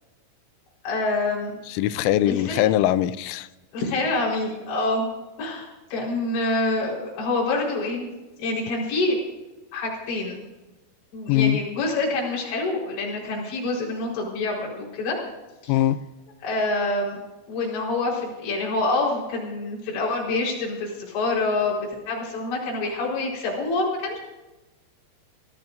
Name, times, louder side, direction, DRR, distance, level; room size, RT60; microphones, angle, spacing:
voice 1, 0.8-1.5 2.2-2.7 3.7-5.1 5.4-8.1 8.4-9.2 9.7-10.4 11.1-15.2 15.6-15.7 16.4-17.2 17.5-24.2, left 2 dB, 70° left, -4 dB, 6.6 m, -26 dB
voice 2, 1.7-3.5 11.3-11.6 15.7-16.0, left 13 dB, 90° left, 14 dB, 3.2 m, -21 dB
24.5 x 16.5 x 2.6 m, 1.1 s
omnidirectional pair, 5.5 m